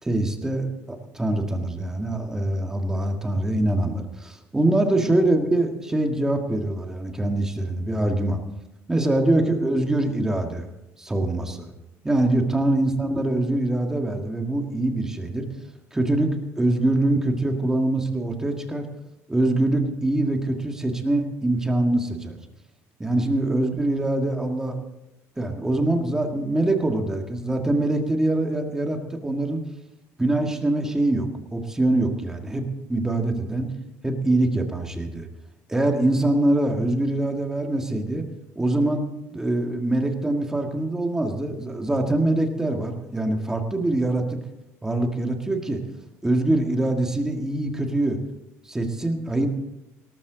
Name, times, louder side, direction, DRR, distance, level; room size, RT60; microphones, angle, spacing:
voice 1, 0.0-8.4 8.9-10.7 11.0-11.7 12.0-15.5 15.9-18.9 19.3-22.4 23.0-24.8 25.4-29.6 30.2-32.6 32.9-33.7 34.0-35.3 35.7-38.2 38.6-44.4 44.8-45.8 46.2-48.2 48.7-49.5, right 1 dB, 10° right, 4 dB, 1.7 m, -24 dB
18.0 x 13.0 x 3.9 m, 0.91 s
cardioid pair, 140°, 6 cm